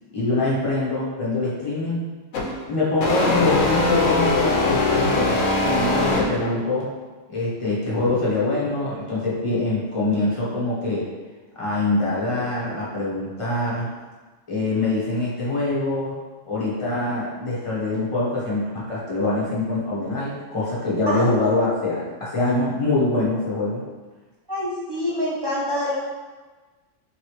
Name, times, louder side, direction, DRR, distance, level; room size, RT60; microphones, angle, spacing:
voice 1, 0.1-2.1 2.7-6.9 7.3-11.1 11.6-13.9 14.5-16.1 16.5-23.8, left 2 dB, 30° left, -7 dB, 0.8 m, -24 dB
sound 1, 2.3-2.5 3.0-6.6, left 2 dB, 90° left, 0.9 m, -21 dB
voice 2, 24.5-26.0, left 1 dB, 30° right, -6 dB, 0.5 m, -26 dB
3.1 x 3.0 x 2.9 m, 1.3 s
omnidirectional pair, 1.3 m